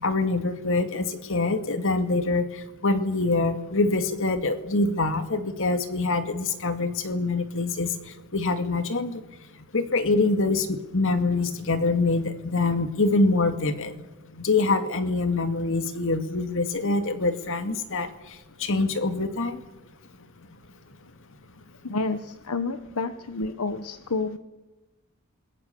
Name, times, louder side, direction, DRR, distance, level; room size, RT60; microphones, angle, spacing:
voice 1, 0.0-2.4 2.8-7.9 8.3-9.2 9.7-13.9 14.4-18.1 18.6-19.6, left 3 dB, 60° left, 8 dB, 2.2 m, -25 dB
voice 2, 21.8-24.4, left 3 dB, 80° left, 10 dB, 1.2 m, -29 dB
28.0 x 21.0 x 7.0 m, 1.0 s
head